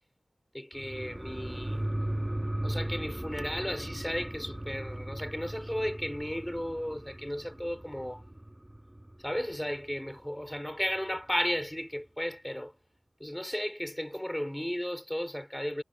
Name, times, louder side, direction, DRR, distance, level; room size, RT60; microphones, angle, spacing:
voice 1, 0.5-2.0 2.6-8.2 9.2-12.7 13.2-15.8, equal, 10° left, 3.4 m, -34 dB
sound 1, 0.7-9.8 10.2-10.3, right 1 dB, 15° right, 1.1 m, -37 dB
wide cardioid pair, 70°, 0 cm